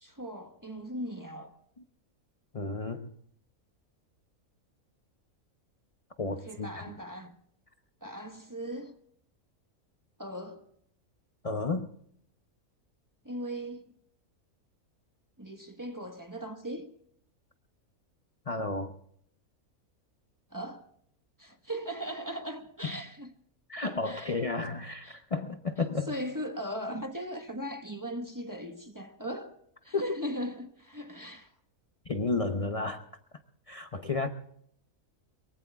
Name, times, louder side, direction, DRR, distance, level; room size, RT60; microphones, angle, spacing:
voice 1, 0.0-1.5 6.4-7.4 8.0-8.9 10.2-10.6 13.2-13.9 15.4-16.9 20.5-20.8 21.4-23.3 23.8-24.4 25.0-25.2 26.1-29.5 29.8-31.5, equal, 15° right, 1.2 m, -38 dB
voice 2, 2.5-3.1 6.2-6.9 11.4-11.9 18.5-18.9 23.7-26.1 29.9-30.2 32.0-33.0 33.7-34.3, left 3 dB, 30° left, 0.7 m, -32 dB
23.5 x 22.5 x 2.3 m
omnidirectional pair, 1.5 m